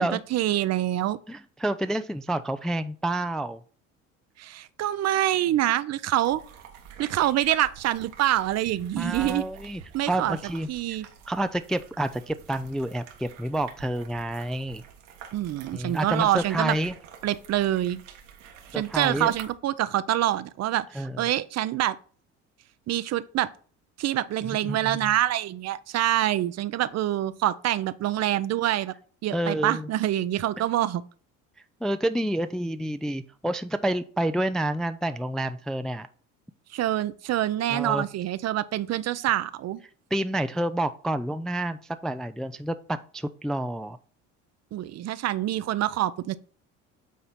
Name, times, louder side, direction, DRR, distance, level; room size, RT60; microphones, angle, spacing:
voice 1, 0.0-1.2 4.4-6.4 7.0-9.4 9.9-10.4 10.7-11.1 15.3-16.7 17.2-18.0 18.7-22.0 22.9-23.5 24.0-28.9 29.2-31.0 36.7-39.8 44.7-46.4, right 13 dB, 45° right, 0.6 m, -26 dB
voice 2, 1.3-3.6 9.0-10.7 11.3-14.8 15.7-16.9 18.7-19.3 20.9-21.2 24.5-25.1 29.3-29.9 30.6-30.7 31.8-36.1 37.7-38.1 40.1-44.0, right 1 dB, ahead, 0.4 m, -29 dB
sound 1, 6.2-19.5, right 7 dB, 80° right, 1.4 m, -47 dB
8.5 x 4.2 x 4.1 m
hypercardioid pair, 65°, 37 cm